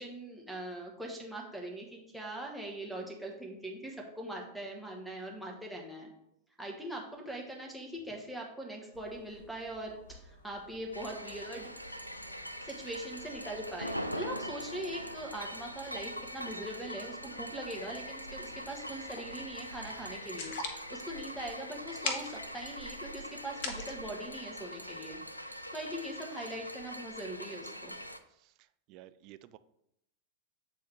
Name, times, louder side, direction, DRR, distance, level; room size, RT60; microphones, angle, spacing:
voice 1, 0.0-6.1 6.6-11.9 12.6-28.0, right 1 dB, ahead, -2 dB, 1.3 m, -42 dB
sound 1, 8.9-20.1, left 1 dB, 70° left, 1.0 m, -58 dB
sound 2, 10.9-28.2, equal, 90° left, 0.4 m, -42 dB
sound 3, 18.3-24.9, left 4 dB, 50° left, 0.9 m, -43 dB
voice 2, 28.3-29.6, right 14 dB, 40° right, 13 dB, 0.3 m, -55 dB
8.0 x 3.8 x 3.4 m, 0.79 s
figure-of-eight pair, 90°, 0 cm